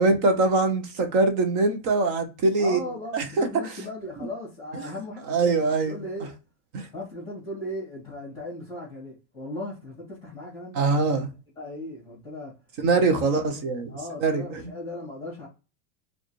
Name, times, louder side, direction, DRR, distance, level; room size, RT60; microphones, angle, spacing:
voice 1, 0.0-2.8 3.1-3.8 4.2-4.3 4.8-4.9 5.3-6.0 6.7-6.9 10.7-11.3 12.8-14.7, right 3 dB, 25° right, 0.4 m, -23 dB
voice 2, 2.6-6.3 6.9-11.2 11.6-12.5 13.0-13.5 13.9-15.5, left 1 dB, 10° left, 1.5 m, -37 dB
4.7 x 2.3 x 3.0 m
supercardioid pair, 175°, 41 cm